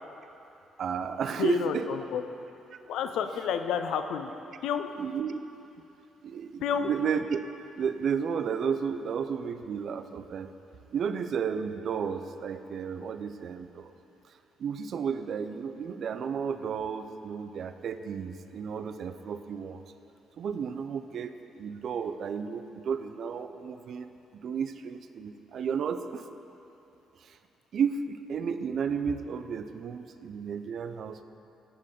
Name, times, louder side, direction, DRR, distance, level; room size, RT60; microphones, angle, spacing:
voice 1, 0.8-1.9 4.9-5.4 6.2-7.4 7.8-10.5 10.9-13.9 14.6-19.8 20.4-26.3 27.2-27.4 27.7-31.2, right 6 dB, 60° right, 9 dB, 0.3 m, -33 dB
voice 2, 1.4-2.2 2.9-4.3 4.6-4.9 6.6-6.9, left 7 dB, 85° left, 8 dB, 0.4 m, -30 dB
7.7 x 6.6 x 3.7 m, 2.8 s
cardioid pair, 90°, 0 cm